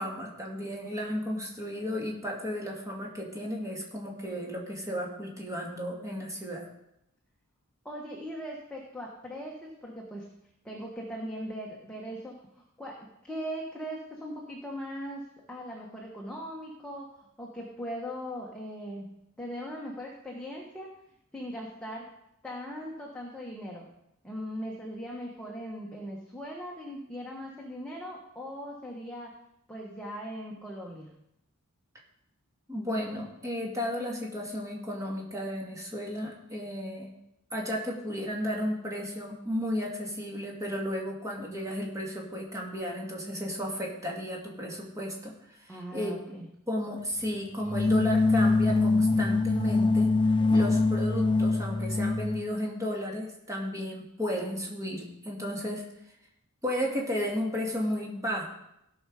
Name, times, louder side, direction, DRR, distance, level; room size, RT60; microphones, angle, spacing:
voice 1, 0.0-6.7 32.7-37.1 37.5-45.3 45.6-46.1 46.7-50.1 50.5-55.9 56.6-58.4, equal, 15° right, -2 dB, 2.3 m, -33 dB
voice 2, 7.8-10.3 10.6-12.3 12.8-15.2 15.5-17.1 17.4-19.1 19.4-20.9 21.3-22.1 22.4-23.9 24.2-29.3 29.7-31.1 45.7-46.5, equal, 5° left, -3 dB, 1.4 m, -39 dB
sound 1, 47.7-52.4, left 3 dB, 20° left, 0.4 m, -24 dB
17.0 x 5.7 x 4.9 m, 0.81 s
head